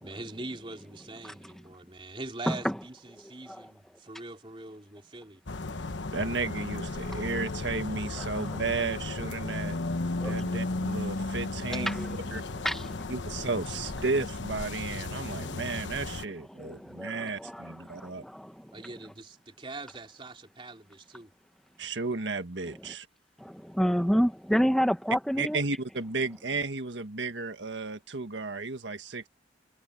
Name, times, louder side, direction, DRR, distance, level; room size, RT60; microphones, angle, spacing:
voice 1, 0.0-5.4 18.7-21.3, right 2 dB, 30° right, 3.3 m, -43 dB
sound 1, 5.5-16.2, left 2 dB, 90° left, 1.1 m, -34 dB
voice 2, 6.1-9.8 10.2-11.9 12.3-12.4 13.1-18.2 21.8-23.1 25.4-29.3, right 3 dB, 85° right, 1.6 m, -33 dB
voice 3, 11.7-12.2 12.6-13.1 15.2-15.6 16.5-18.7 23.4-25.6, equal, ahead, 0.9 m, -29 dB
head